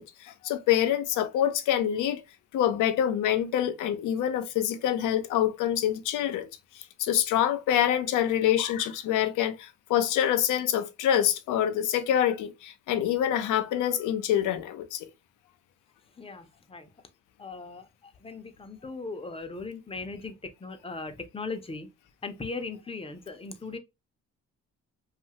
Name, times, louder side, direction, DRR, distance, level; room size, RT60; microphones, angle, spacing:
voice 1, 0.0-2.2 2.5-6.5 6.7-15.1, left 10 dB, 85° left, 0.6 m, -26 dB
voice 2, 16.2-16.9 17.4-21.9 22.2-23.8, left 3 dB, 20° left, 0.6 m, -38 dB
2.6 x 2.4 x 2.8 m
cardioid pair, 90°, 30 cm